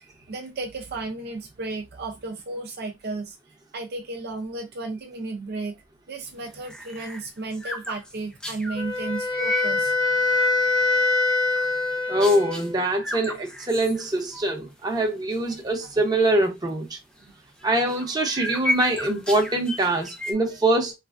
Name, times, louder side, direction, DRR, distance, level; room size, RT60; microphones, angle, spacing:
voice 1, 0.0-3.4 3.7-9.9 17.2-17.3, right 3 dB, 55° right, 0.5 m, -34 dB
sound 1, 6.3-8.8 9.3-9.7 10.2-10.8 11.1-11.8 12.2-12.7 13.0-14.5 14.8-14.9 15.3-15.6 16.1-16.2 17.6-20.3, left 1 dB, 5° left, 0.4 m, -34 dB
Wind instrument woodwind instrument, 8.8-12.8, left 3 dB, 75° left, 0.9 m, -24 dB
voice 2, 12.1-17.0 17.6-21.0, right 1 dB, 20° right, 0.8 m, -23 dB
3.2 x 2.1 x 2.5 m
head